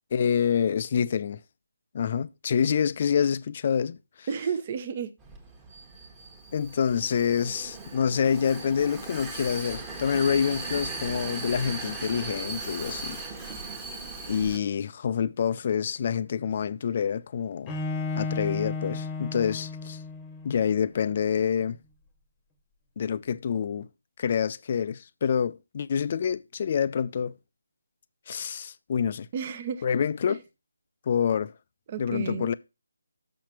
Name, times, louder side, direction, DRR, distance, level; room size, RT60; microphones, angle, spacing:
voice 1, 0.1-1.4 1.9-4.3 6.5-13.5 14.3-17.8 18.2-20.0 20.4-21.8 23.0-23.9 24.2-27.4 28.3-29.3 29.8-30.4 31.1-31.5 32.0-32.5, left 7 dB, 35° left, 0.4 m, -27 dB
voice 2, 4.3-5.1 29.3-29.8 30.3-30.4 31.9-32.5, right 6 dB, 30° right, 0.7 m, -32 dB
Vehicle, 5.2-14.6, right 3 dB, 10° right, 1.2 m, -38 dB
Bowed string instrument, 17.7-20.6, left 3 dB, 15° left, 1.0 m, -33 dB
6.8 x 5.8 x 5.9 m
figure-of-eight pair, 150°, 0 cm